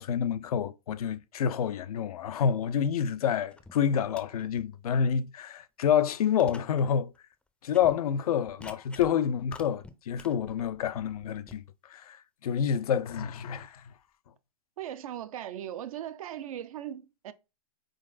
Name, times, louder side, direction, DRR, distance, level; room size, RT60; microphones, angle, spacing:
voice 1, 0.0-7.1 7.6-11.6 11.9-12.2 12.4-13.8, left 8 dB, 70° left, 0.5 m, -28 dB
sound 1, 3.5-3.7 4.0-4.6 5.1-5.2 5.9-6.0 6.4-6.9 7.2-7.3 7.7-8.0 8.5-9.1 9.4-11.6, left 2 dB, 5° left, 0.5 m, -49 dB
voice 2, 14.8-17.3, right 11 dB, 65° right, 0.6 m, -38 dB
4.4 x 3.8 x 2.5 m
hypercardioid pair, 115°, 19 cm